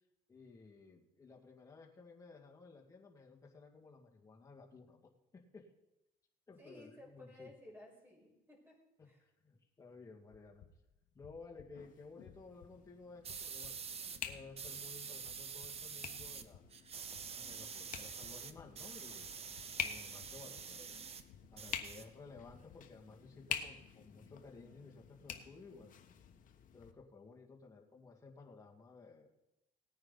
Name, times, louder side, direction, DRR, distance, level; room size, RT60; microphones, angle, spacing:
voice 1, 0.3-5.7 6.5-7.5 9.0-10.7 11.1-16.6 17.3-19.3 19.8-20.9 21.5-25.9 26.7-29.3, left 4 dB, 20° left, -2 dB, 2.2 m, -56 dB
voice 2, 6.6-8.8 9.0-9.2, left 1 dB, 10° right, -2 dB, 5.5 m, -56 dB
sound 1, 10.3-23.1, left 7 dB, 75° left, 1.7 m, -64 dB
sound 2, 11.7-26.9, left 8 dB, 50° left, 1.2 m, -48 dB
sound 3, 13.2-14.2 14.6-16.4 16.7-21.2 21.5-22.5, right 6 dB, 35° right, 0.8 m, -47 dB
18.0 x 9.6 x 4.1 m, 0.92 s
cardioid pair, 110°, 17 cm